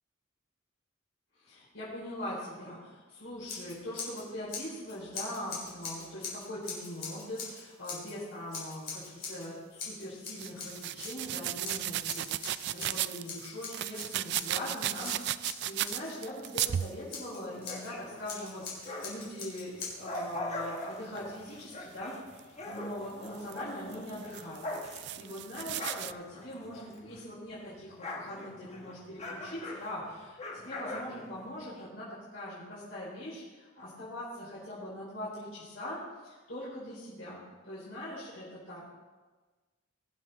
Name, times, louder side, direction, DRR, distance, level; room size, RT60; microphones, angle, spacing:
voice 1, 1.4-22.1 22.7-32.1 32.3-38.8, left 1 dB, 70° left, -9 dB, 4.7 m, -42 dB
Scissors, 3.4-4.2 4.5-8.1 8.5-9.5 9.8-11.3 11.6-16.1 16.5-17.9 18.2-20.2, left 5 dB, 50° left, 3.7 m, -42 dB
sound 1, 10.4-17.0 20.2-20.4 21.1-21.2 22.4-22.5 23.2-23.6 23.9-26.1, right 12 dB, 55° right, 0.3 m, -35 dB
sound 2, 17.5-19.4 19.7-27.3 27.6-31.9, left 2 dB, 35° left, 1.3 m, -42 dB
22.0 x 7.3 x 3.7 m, 1.3 s
head